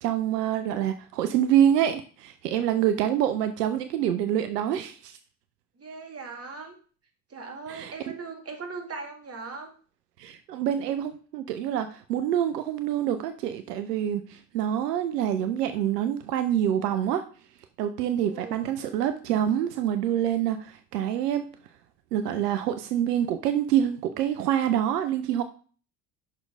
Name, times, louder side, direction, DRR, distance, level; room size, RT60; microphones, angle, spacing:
voice 1, 0.0-5.2 7.7-7.9 10.2-17.2 17.8-21.5 22.1-25.4, right 10 dB, 80° right, 9 dB, 0.6 m, -26 dB
voice 2, 5.8-6.8 7.3-9.7 18.3-18.7, right 4 dB, 30° right, 3 dB, 2.1 m, -39 dB
6.0 x 4.4 x 5.1 m, 0.40 s
hypercardioid pair, 60°, 47 cm